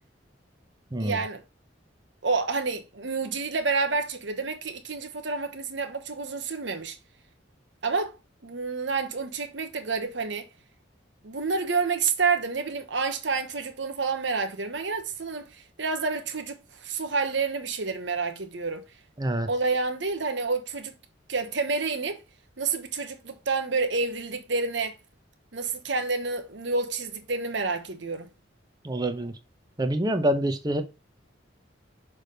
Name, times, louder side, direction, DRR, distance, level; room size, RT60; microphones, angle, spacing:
voice 1, 1.0-1.4 2.2-7.0 7.8-8.2 8.4-10.5 11.2-18.8 19.5-20.9 21.3-22.2 22.6-25.0 25.5-28.3, right 4 dB, 65° right, 1.0 m, -29 dB
voice 2, 19.2-19.5 28.8-29.3 29.8-30.8, right 1 dB, 20° right, 0.8 m, -26 dB
6.2 x 3.4 x 5.2 m
head